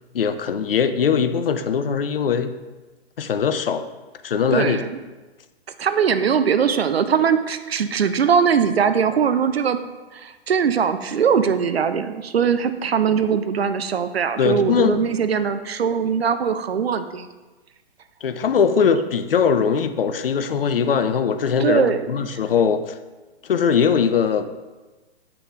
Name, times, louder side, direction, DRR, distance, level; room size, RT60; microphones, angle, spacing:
voice 1, 0.1-2.5 3.2-3.8 4.2-4.8 14.4-15.1 18.2-23.0 23.4-24.5, left 6 dB, 60° left, 10 dB, 0.5 m, -21 dB
voice 2, 4.5-5.0 5.8-9.8 10.1-17.3 21.6-22.3, right 7 dB, 70° right, 10 dB, 0.5 m, -21 dB
7.7 x 5.9 x 2.4 m, 1.2 s
figure-of-eight pair, 120°, 32 cm